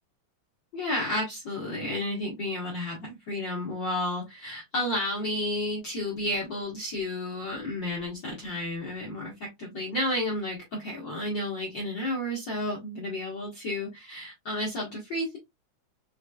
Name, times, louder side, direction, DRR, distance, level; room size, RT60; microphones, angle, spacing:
voice 1, 0.7-15.4, left 1 dB, 60° left, -3 dB, 1.2 m, -32 dB
4.9 x 3.1 x 2.3 m, 0.19 s
omnidirectional pair, 3.5 m